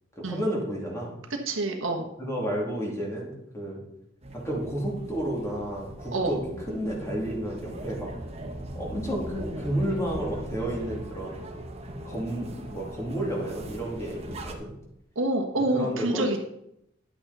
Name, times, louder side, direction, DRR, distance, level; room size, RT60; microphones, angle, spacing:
voice 1, 0.2-1.2 2.2-3.8 4.3-6.4 6.7-8.1 8.7-11.4 12.0-14.7 15.7-16.4, right 1 dB, 15° left, -3 dB, 2.7 m, -31 dB
voice 2, 1.5-2.0 6.1-6.3 15.1-16.4, right 2 dB, 75° right, 3 dB, 1.4 m, -27 dB
sound 1, 4.2-14.5, right 1 dB, 30° right, 1.2 m, -40 dB
10.5 x 8.3 x 4.1 m, 0.78 s
head